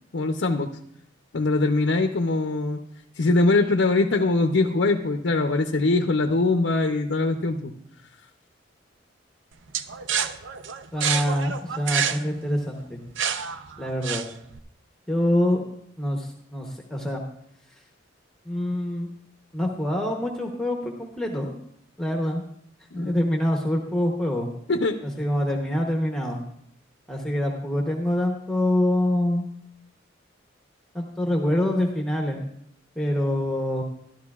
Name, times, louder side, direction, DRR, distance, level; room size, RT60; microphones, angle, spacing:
voice 1, 0.1-0.7 1.3-2.8 3.2-7.7 22.9-23.2 24.7-25.0, left 2 dB, 70° left, 5 dB, 0.6 m, -22 dB
sound 1, 9.7-14.6, right 7 dB, 75° right, 0.5 m, -28 dB
voice 2, 10.9-13.0 13.8-14.2 15.1-15.6 16.0-17.2 18.5-19.1 19.5-21.5 22.0-22.4 22.9-24.5 25.2-26.4 27.1-29.5 30.9-32.4 33.0-33.8, left 1 dB, 5° left, 0 dB, 0.8 m, -25 dB
13.0 x 12.5 x 2.4 m, 0.73 s
head